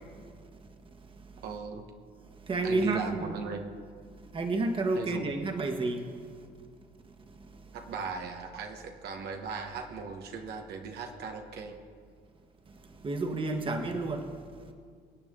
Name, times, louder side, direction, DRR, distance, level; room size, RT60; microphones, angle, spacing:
voice 1, 1.4-1.8 2.6-3.7 4.9-5.4 7.7-11.8, right 5 dB, 70° right, 3 dB, 1.2 m, -37 dB
voice 2, 2.5-3.4 4.3-6.0 13.0-14.3, right 2 dB, 30° right, 5 dB, 1.4 m, -30 dB
25.0 x 8.6 x 3.7 m, 2.1 s
cardioid pair, 110°, 17 cm